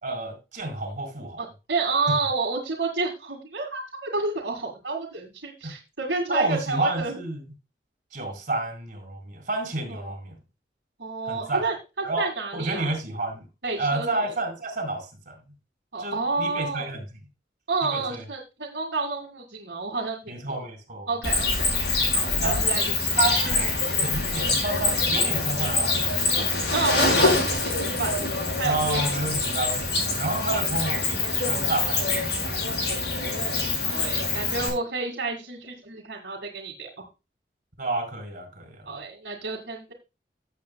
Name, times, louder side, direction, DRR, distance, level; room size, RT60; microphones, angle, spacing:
voice 1, 0.0-1.4 5.6-5.7 6.3-7.4 8.1-10.4 11.2-11.6 12.0-13.5 13.8-15.4 16.0-17.0 17.9-18.2 20.3-21.1 22.4-22.6 23.2-26.6 27.2-27.3 28.6-32.6 32.9-33.0 33.3-33.5 37.8-39.0, right 2 dB, 45° right, 4.1 m, -30 dB
voice 2, 1.4-7.2 9.9-10.2 11.0-12.9 13.6-14.3 15.9-16.9 17.7-20.2 21.1-21.8 22.1-23.1 26.7-28.3 28.6-29.0 33.2-36.9 38.9-39.9, right 3 dB, 75° right, 2.0 m, -30 dB
Cricket, 21.2-34.7, left 3 dB, 70° left, 5.1 m, -25 dB
16.0 x 7.8 x 2.2 m
head